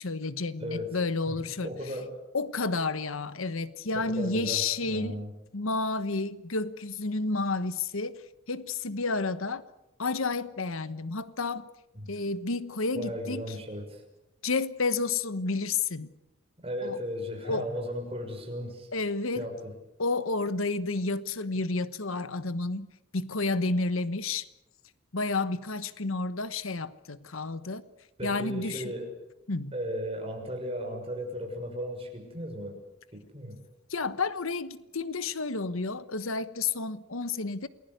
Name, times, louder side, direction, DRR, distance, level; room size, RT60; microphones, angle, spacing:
voice 1, 0.0-1.7 2.3-5.2 5.5-8.2 8.5-9.6 10.0-11.7 12.1-13.4 14.4-16.1 16.8-17.0 17.4-17.7 18.9-19.5 20.0-22.9 23.1-24.5 25.1-27.8 28.2-28.9 29.5-29.7 33.9-37.7, left 3 dB, 75° left, 14 dB, 1.2 m, -30 dB
voice 2, 0.6-1.0 1.3-2.1 3.9-5.3 11.9-12.1 12.9-14.0 16.6-18.9 19.3-19.7 28.2-29.1 29.7-32.8 33.1-33.6, equal, 25° right, 3 dB, 6.3 m, -36 dB
29.0 x 20.0 x 8.1 m, 0.91 s
head